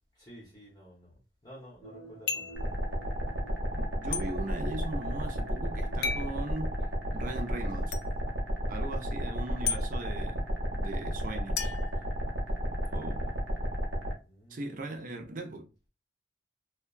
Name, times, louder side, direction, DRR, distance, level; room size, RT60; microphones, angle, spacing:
voice 1, 0.1-1.1 1.4-2.9 12.8-13.5 14.3-14.9, equal, 20° left, 0.7 m, -52 dB
sound 1, 1.8-7.7 8.0-8.1, equal, 15° right, 1.0 m, -50 dB
sound 2, 2.3-2.6 4.1-4.3 6.0-6.3 7.9-8.0 9.7-9.8 11.6-12.6, left 6 dB, 60° left, 0.3 m, -34 dB
sound 3, 2.6-14.1, equal, 75° right, 0.8 m, -33 dB
voice 2, 3.7-7.9 8.7-11.7 12.7-13.2 14.5-15.7, right 2 dB, 45° right, 0.5 m, -39 dB
2.8 x 2.2 x 2.3 m
head